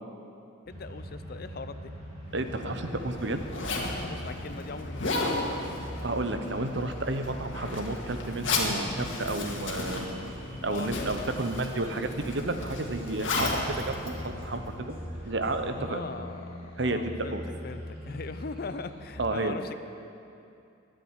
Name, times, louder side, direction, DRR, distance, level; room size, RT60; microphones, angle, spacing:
voice 1, 0.7-2.0 4.0-5.5 10.7-11.1 11.4-12.1 15.3-15.4 15.8-17.4 17.6-19.8, left 4 dB, 50° left, 11 dB, 0.5 m, -40 dB
sound 1, 0.7-19.1, equal, 30° right, 2.4 m, -43 dB
Zipper (clothing), 2.3-15.0, left 2 dB, 80° left, 1.9 m, -34 dB
voice 2, 2.3-3.4 6.0-10.3 10.6-14.9 15.2-16.0 16.8-17.4 19.2-19.6, right 2 dB, 65° right, 7 dB, 0.9 m, -31 dB
sound 2, 9.1-15.9, equal, 10° right, 3.1 m, -47 dB
12.0 x 7.7 x 9.8 m, 2.6 s
head